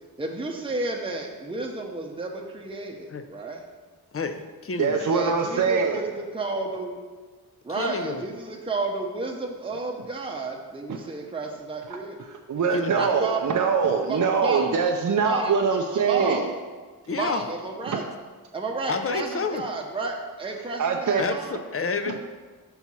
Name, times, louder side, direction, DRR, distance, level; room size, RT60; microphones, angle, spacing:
voice 1, 0.2-3.6 5.1-7.0 7.6-12.2 12.9-13.4 14.1-14.7 15.2-16.4 17.2-18.0 18.5-21.6, right 3 dB, 15° right, 0 dB, 0.8 m, -32 dB
voice 2, 4.1-5.1 7.8-8.3 12.7-13.2 17.1-17.4 18.9-19.6 21.2-22.2, left 4 dB, 35° left, 8 dB, 0.6 m, -29 dB
voice 3, 4.8-6.0 10.9-11.0 12.5-16.5 17.9-18.0 20.8-21.2 22.1-22.2, right 5 dB, 50° right, 3 dB, 0.6 m, -23 dB
5.6 x 4.7 x 5.5 m, 1.4 s
wide cardioid pair, 75°, 38 cm